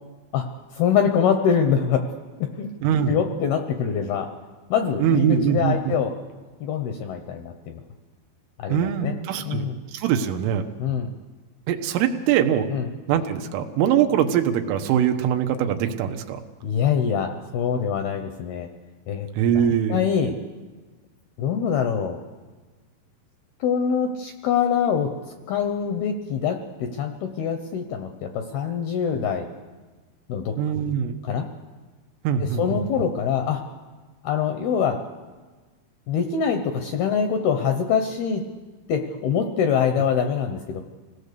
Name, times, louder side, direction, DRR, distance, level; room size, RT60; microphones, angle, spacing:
voice 1, 0.7-2.1 2.4-2.7 3.1-4.3 4.7-6.2 6.6-7.8 8.6-9.2 9.4-9.8 10.8-11.1 12.7-12.9 16.6-18.7 19.1-19.3 19.6-20.4 21.4-22.2 23.6-25.2 25.5-29.5 30.3-30.6 31.2-31.5 32.4-33.6 34.2-35.0 36.1-38.5 38.9-40.8, left 7 dB, 80° left, 5 dB, 2.3 m, -24 dB
voice 2, 2.8-3.2 5.0-6.0 8.7-9.7 9.9-10.7 11.7-12.7 13.1-16.4 19.4-20.0 30.6-31.2 32.3-32.8, right 9 dB, 85° right, 6 dB, 3.7 m, -22 dB
26.5 x 18.0 x 6.7 m, 1.3 s
omnidirectional pair, 5.6 m